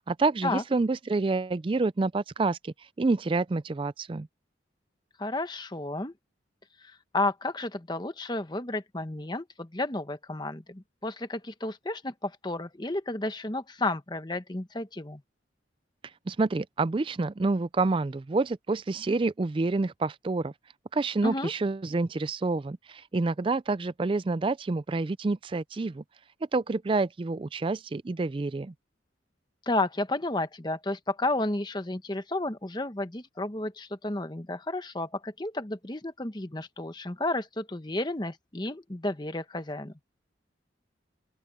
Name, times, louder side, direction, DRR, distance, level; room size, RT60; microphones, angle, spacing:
voice 1, 0.0-4.3 16.3-20.5 20.9-26.0 26.5-28.7, right 3 dB, 25° right, 0.3 m, -28 dB
voice 2, 5.2-6.1 6.8-15.2 21.2-21.5 29.7-39.9, left 2 dB, 25° left, 1.0 m, -32 dB
open air
head